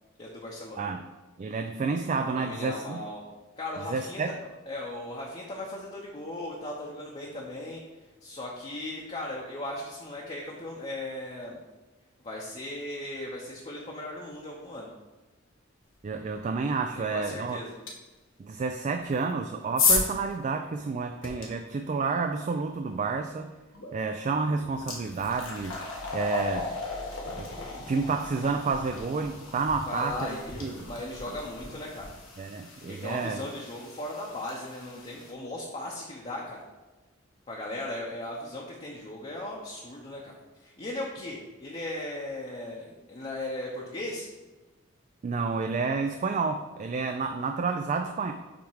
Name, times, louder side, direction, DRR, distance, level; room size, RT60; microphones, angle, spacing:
voice 1, 0.2-0.9 2.3-3.2 3.6-4.3 4.7-7.8 8.2-11.6 12.2-14.9 17.0-17.8 29.8-32.1 32.9-36.6 37.5-44.3, left 1 dB, 30° left, -3 dB, 0.8 m, -37 dB
voice 2, 1.4-3.0 3.9-4.3 16.0-17.6 18.4-23.5 23.9-25.8 26.1-26.7 27.4-27.5 27.9-30.9 32.4-33.4 45.2-48.3, right 4 dB, 35° right, 6 dB, 0.3 m, -30 dB
sound 1, 17.9-18.0 19.0-21.4 23.7-23.9 24.3-35.3, left 4 dB, 85° left, 1.6 m, -34 dB
7.2 x 3.5 x 4.7 m, 1.2 s
head